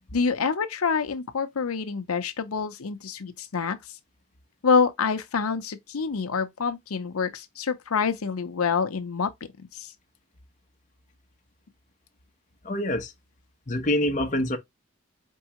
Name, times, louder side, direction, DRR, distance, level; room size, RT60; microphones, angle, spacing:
voice 1, 0.1-3.9 4.6-9.3 9.6-9.9, left 5 dB, 90° left, 0.7 m, -27 dB
voice 2, 12.6-13.1 13.7-14.6, left 1 dB, 35° left, 0.9 m, -25 dB
4.6 x 3.5 x 3.0 m
head